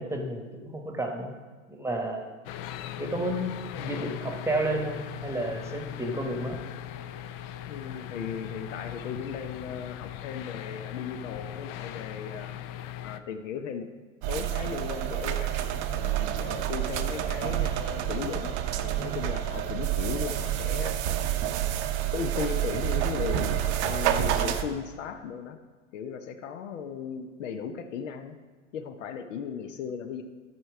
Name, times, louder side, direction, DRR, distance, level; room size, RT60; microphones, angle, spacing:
voice 1, 0.0-1.3 1.7-2.3 3.0-6.6, right 1 dB, 5° right, 3 dB, 1.0 m, -31 dB
sound 1, 2.4-13.2, left 11 dB, 50° left, 0.5 m, -39 dB
voice 2, 7.7-12.5 13.0-13.9 14.3-21.0 22.1-25.6 25.9-28.4 28.7-30.2, left 7 dB, 75° left, 8 dB, 0.8 m, -36 dB
sound 2, 14.2-24.6, right 11 dB, 60° right, 0.8 m, -28 dB
12.5 x 4.5 x 4.7 m, 1.4 s
hypercardioid pair, 110°, 39 cm